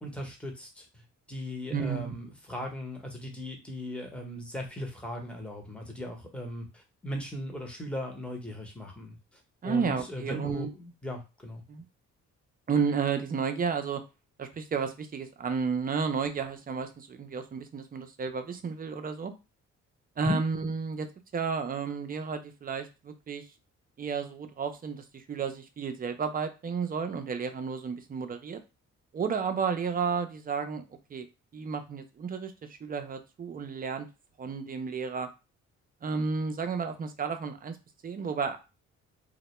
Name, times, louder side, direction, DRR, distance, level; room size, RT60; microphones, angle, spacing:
voice 1, 0.0-1.0 1.3-9.2 9.6-11.6 20.2-20.4, left 1 dB, 5° left, 1 dB, 0.8 m, -38 dB
voice 2, 1.7-2.2 9.6-10.7 11.7-11.8 12.7-14.0 14.4-19.3 20.2-21.1 21.3-23.5 24.0-28.6 29.1-30.8 31.1-31.3 31.5-34.1 34.4-35.3 36.0-37.8 38.0-38.6, right 5 dB, 30° right, 8 dB, 0.4 m, -32 dB
2.1 x 2.1 x 3.0 m, 0.28 s
cardioid pair, 90°, 30 cm